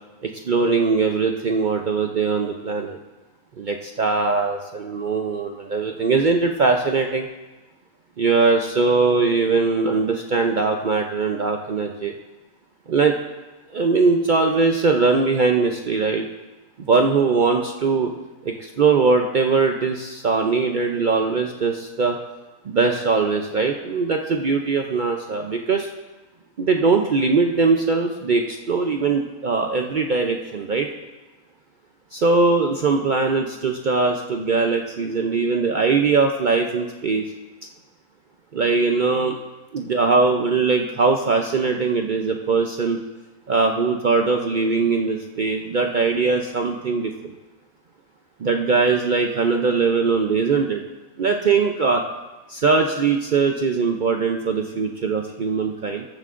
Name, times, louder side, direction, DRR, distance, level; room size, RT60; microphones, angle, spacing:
voice 1, 0.2-3.0 3.6-7.3 8.2-12.1 12.9-13.1 13.7-16.3 16.9-18.1 18.4-22.2 22.7-25.9 26.6-30.9 32.1-37.2 38.5-39.4 39.7-43.0 43.5-47.4 48.4-50.8 51.2-52.0 52.5-56.0, right 4 dB, 60° right, 3 dB, 0.5 m, -21 dB
14.0 x 11.0 x 2.5 m, 1.1 s
omnidirectional pair, 1.5 m